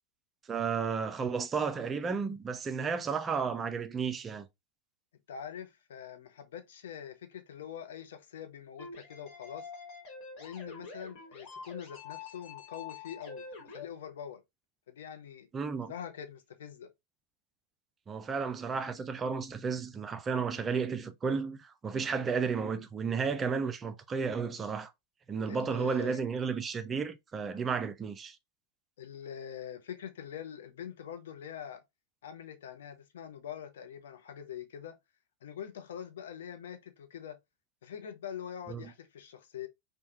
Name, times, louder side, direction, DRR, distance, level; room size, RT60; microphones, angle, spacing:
voice 1, 0.5-4.5 15.5-15.9 18.1-24.9 25.3-28.4 38.7-38.9, right 5 dB, 20° right, 0.3 m, -33 dB
voice 2, 5.3-9.7 10.4-14.4 14.9-15.5 15.9-16.9 25.5-26.2 29.0-31.8 32.2-35.0 35.4-37.4 37.8-39.7, left 9 dB, 60° left, 0.5 m, -44 dB
sound 1, 8.8-13.8, left 4 dB, 35° left, 1.3 m, -46 dB
3.2 x 2.2 x 2.7 m
figure-of-eight pair, 90°, 0 cm